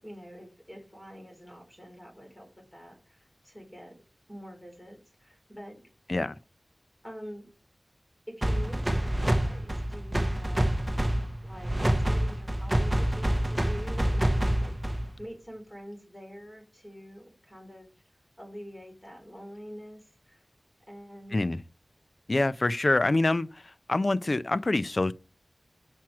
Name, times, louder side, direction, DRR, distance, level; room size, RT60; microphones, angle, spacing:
voice 1, 0.0-4.0 4.3-5.9 7.0-7.5 8.3-10.7 11.4-17.9 18.4-20.5 20.9-21.4, equal, 15° left, 3.7 m, -46 dB
sound 1, 8.4-15.2, right 1 dB, 20° right, 0.9 m, -27 dB
voice 2, 22.3-25.1, left 2 dB, 45° left, 0.4 m, -26 dB
5.9 x 4.5 x 6.1 m
wide cardioid pair, 75°, 0 cm